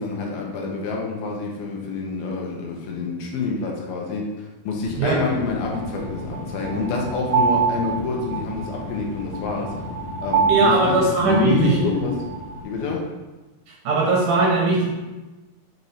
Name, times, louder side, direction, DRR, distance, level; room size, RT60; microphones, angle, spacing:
voice 1, 0.0-9.7 10.2-10.9 11.2-12.2 12.6-13.1, left 4 dB, 80° left, -1 dB, 2.8 m, -27 dB
sound 1, 4.8-12.9, left 2 dB, 60° left, 2.2 m, -36 dB
sound 2, 5.7-12.6, right 6 dB, 85° right, 2.8 m, -26 dB
voice 2, 10.5-11.8 13.7-14.9, right 3 dB, 70° right, -3 dB, 2.2 m, -20 dB
6.7 x 4.2 x 4.2 m, 1.1 s
omnidirectional pair, 4.4 m